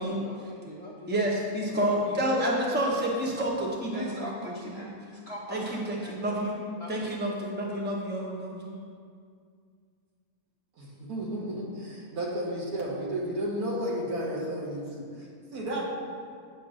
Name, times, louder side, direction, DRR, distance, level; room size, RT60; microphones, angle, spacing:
voice 1, 0.0-1.2 1.7-2.3 3.9-6.2 6.8-7.1, left 1 dB, 30° left, -6 dB, 0.7 m, -40 dB
voice 2, 1.1-4.9 5.5-6.6 6.9-8.8, right 1 dB, 10° right, -3 dB, 0.7 m, -29 dB
voice 3, 10.8-15.8, right 1 dB, 85° right, -3 dB, 1.7 m, -33 dB
8.0 x 3.1 x 6.1 m, 2.2 s
omnidirectional pair, 1.5 m